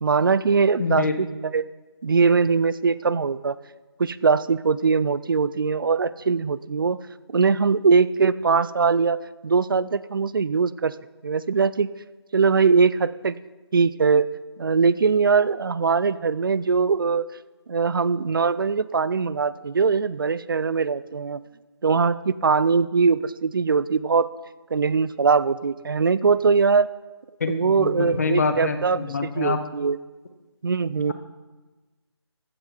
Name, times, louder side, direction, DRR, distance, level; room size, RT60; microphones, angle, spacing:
voice 1, 0.0-1.7 2.0-3.6 4.0-7.0 7.3-10.9 11.2-11.9 12.3-13.4 13.7-14.3 14.6-17.3 17.7-21.4 21.8-24.3 24.7-26.9 27.5-30.0 30.6-31.1, right 5 dB, 50° right, 17 dB, 0.4 m, -21 dB
voice 2, 0.8-1.1 27.4-29.6, left 4 dB, 35° left, 8 dB, 0.8 m, -25 dB
15.0 x 5.7 x 4.9 m, 1.2 s
figure-of-eight pair, 160°, 14 cm